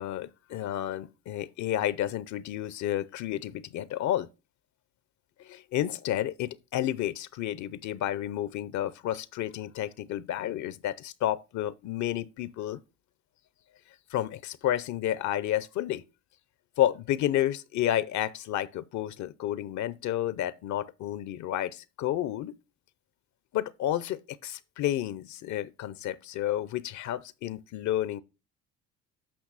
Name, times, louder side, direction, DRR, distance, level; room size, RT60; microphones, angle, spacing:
voice 1, 0.0-4.3 5.4-12.8 14.1-16.0 16.8-22.6 23.5-28.2, left 12 dB, 60° left, 0.6 m, -31 dB
8.6 x 5.8 x 4.0 m
supercardioid pair, 70°, 32 cm